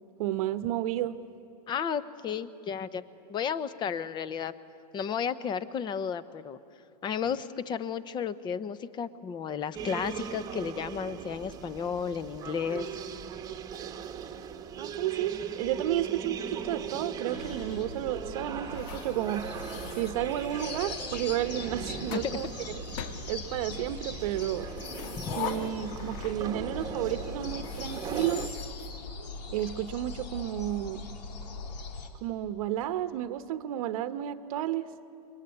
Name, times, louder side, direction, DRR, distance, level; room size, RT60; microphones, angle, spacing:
voice 1, 0.2-1.2 14.8-19.5 19.9-22.5 23.3-24.7 25.4-28.5 29.5-31.1 32.2-34.9, right 12 dB, 55° right, 11 dB, 1.0 m, -32 dB
voice 2, 1.7-3.0 3.3-4.5 4.9-6.6 7.0-12.9 25.2-25.3, left 7 dB, 20° left, 15 dB, 0.9 m, -33 dB
sound 1, 9.7-28.5, right 7 dB, 15° right, 1.3 m, -39 dB
sound 2, 17.3-32.1, left 4 dB, 75° left, 3.4 m, -41 dB
sound 3, 18.6-20.9 21.6-22.3 22.9-23.9 24.6-26.7 27.0-27.1 27.5-29.6, left 8 dB, 50° left, 1.6 m, -43 dB
26.0 x 23.0 x 9.7 m, 2.6 s
hypercardioid pair, 140°, 21 cm